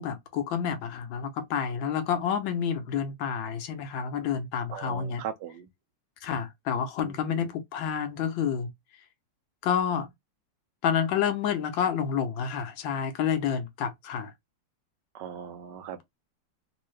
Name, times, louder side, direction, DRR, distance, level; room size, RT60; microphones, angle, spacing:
voice 1, 0.0-5.2 6.2-8.7 9.6-10.1 10.8-14.3, left 7 dB, 85° left, 1.5 m, -29 dB
voice 2, 4.7-5.7 7.0-7.5 15.1-16.0, right 9 dB, 75° right, 1.2 m, -39 dB
3.7 x 2.6 x 3.1 m
omnidirectional pair, 2.0 m